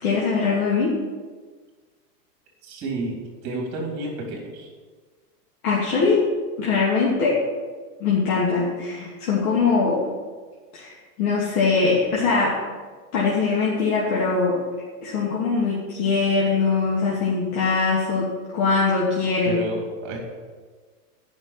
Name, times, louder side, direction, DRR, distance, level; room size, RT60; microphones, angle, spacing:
voice 1, 0.0-0.9 5.6-6.2 6.6-7.3 8.0-10.0 10.7-10.9 11.2-12.5 13.1-14.6 15.0-18.3 18.5-19.6, left 4 dB, 65° left, -6 dB, 2.8 m, -22 dB
voice 2, 2.6-3.1 3.4-4.7 19.4-20.2, right 2 dB, 35° right, 0 dB, 3.4 m, -31 dB
9.5 x 5.9 x 8.4 m, 1.5 s
supercardioid pair, 150°, 48 cm